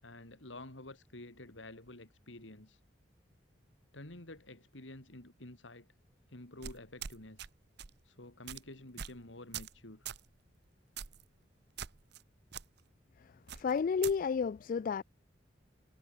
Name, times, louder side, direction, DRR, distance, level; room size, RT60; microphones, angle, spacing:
voice 1, 0.0-2.8 3.9-5.9 6.3-7.5 8.0-10.1, left 2 dB, 85° left, 3.5 m, -50 dB
sound 1, 6.6-7.5 7.8-8.0 8.5-8.6 9.0-9.2 9.5-9.8 10.1-10.3 11.0-11.2 11.8-12.2 12.5-12.6 13.5-14.2, right 8 dB, 60° right, 0.9 m, -43 dB
voice 2, 13.5-15.0, left 6 dB, 45° left, 0.3 m, -31 dB
head